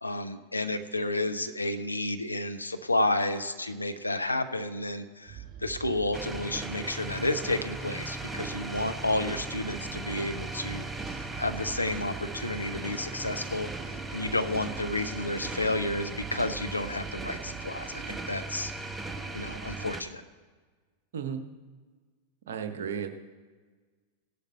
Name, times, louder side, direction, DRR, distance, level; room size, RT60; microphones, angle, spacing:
voice 1, 0.0-18.7 19.3-20.2, left 2 dB, 85° left, 8 dB, 0.5 m, -31 dB
sound 1, 5.3-20.0, right 10 dB, 30° right, 3.9 m, -45 dB
sound 2, 6.1-20.0, right 2 dB, 10° right, 0.6 m, -38 dB
voice 2, 22.5-23.1, right 7 dB, 60° right, 7 dB, 0.8 m, -33 dB
17.0 x 11.5 x 2.3 m, 1.4 s
figure-of-eight pair, 90°, 0 cm